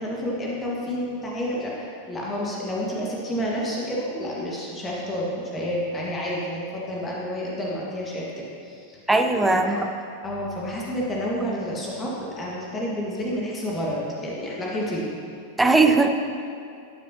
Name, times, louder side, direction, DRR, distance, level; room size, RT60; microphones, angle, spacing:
voice 1, 0.0-9.0 9.6-9.8 10.2-15.2, equal, 20° left, -4 dB, 1.7 m, -29 dB
voice 2, 9.1-9.9 15.6-16.1, right 3 dB, 10° right, 4 dB, 0.7 m, -19 dB
13.0 x 9.2 x 2.9 m, 2.5 s
figure-of-eight pair, 90°, 0 cm